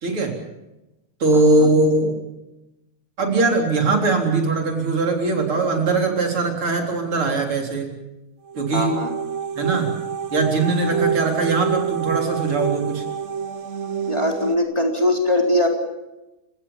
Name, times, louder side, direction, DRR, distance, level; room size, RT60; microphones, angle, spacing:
voice 1, 0.0-0.3 1.2-2.1 3.2-7.9 8.5-8.9 9.6-9.9 10.3-13.0, right 3 dB, 80° right, 2 dB, 4.6 m, -20 dB
voice 2, 1.3-1.7 8.7-9.1 10.9-11.1 14.1-15.7, left 1 dB, 15° left, 1 dB, 3.7 m, -21 dB
sound 1, 8.5-14.5, right 7 dB, 55° right, 0.8 m, -27 dB
29.5 x 17.5 x 7.1 m, 0.97 s
omnidirectional pair, 2.3 m